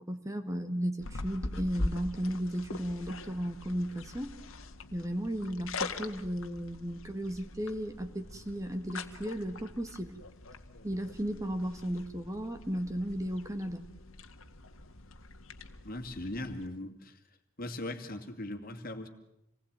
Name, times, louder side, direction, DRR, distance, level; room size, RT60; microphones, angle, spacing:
voice 1, 0.0-4.3 4.9-10.2 10.8-13.9, equal, 15° right, 7 dB, 1.6 m, -35 dB
sound 1, 1.0-16.7, left 2 dB, 65° left, 1.8 m, -43 dB
voice 2, 15.8-17.2 17.6-19.1, left 1 dB, 45° left, 6 dB, 2.5 m, -39 dB
28.5 x 20.0 x 9.0 m, 0.83 s
head